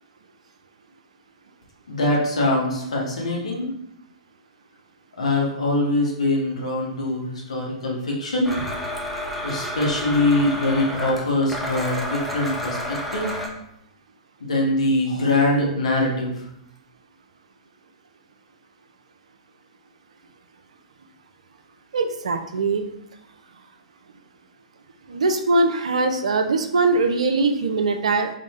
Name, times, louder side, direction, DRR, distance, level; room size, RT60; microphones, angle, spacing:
voice 1, 1.9-3.7 5.2-8.6 9.4-13.3 14.4-16.3, left 2 dB, 75° left, -2 dB, 1.1 m, -23 dB
Domestic sounds home sounds, 8.4-13.5, equal, ahead, 0.5 m, -30 dB
voice 2, 21.9-22.8 25.1-28.3, right 3 dB, 70° right, 6 dB, 0.4 m, -21 dB
3.7 x 2.0 x 3.5 m, 0.77 s
figure-of-eight pair, 115°, 4 cm